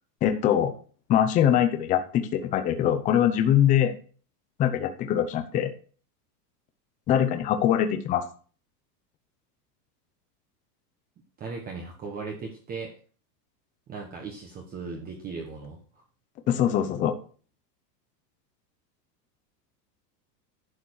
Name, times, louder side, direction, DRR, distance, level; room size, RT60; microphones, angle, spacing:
voice 1, 0.2-0.7 1.1-3.9 4.6-5.7 7.1-8.2 16.5-17.1, left 10 dB, 15° left, 7 dB, 0.7 m, -23 dB
voice 2, 11.4-12.9 13.9-15.8, right 4 dB, 20° right, 1 dB, 1.4 m, -37 dB
11.5 x 6.8 x 4.8 m, 0.39 s
supercardioid pair, 165°, 48 cm